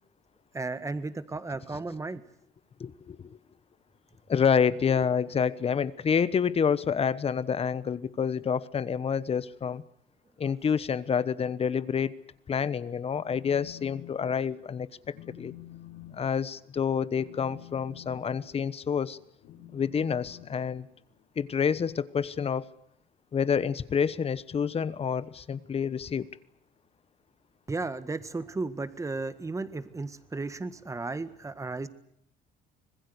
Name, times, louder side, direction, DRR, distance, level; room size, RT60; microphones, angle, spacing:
voice 1, 0.5-2.2 27.7-31.9, right 3 dB, 20° right, 12 dB, 1.7 m, -34 dB
voice 2, 2.8-3.4 4.3-9.8 10.4-12.1 12.5-14.9 15.4-15.5 16.1-19.2 19.7-20.9 21.4-22.7 23.3-26.3, left 7 dB, 35° left, 17 dB, 1.1 m, -28 dB
Telephone, 13.1-14.1 14.5-14.8 15.1-21.2, left 12 dB, 85° left, 6.9 m, -49 dB
25.5 x 20.5 x 8.2 m, 0.70 s
cardioid pair, 110°, 17 cm